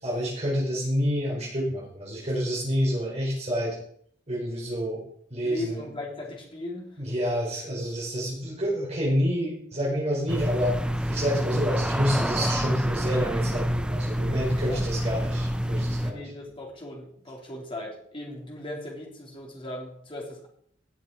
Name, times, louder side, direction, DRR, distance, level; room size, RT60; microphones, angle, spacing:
voice 1, 0.0-3.8 4.3-5.0 5.3-5.8 7.0-10.8 11.0-16.2, equal, 35° right, -4 dB, 4.3 m, -28 dB
voice 2, 5.4-6.9 14.7-14.8 16.0-20.5, left 1 dB, 30° left, -1 dB, 3.3 m, -38 dB
sound 1, 10.3-16.1, equal, 5° right, 0.7 m, -27 dB
17.0 x 7.1 x 4.6 m, 0.64 s
head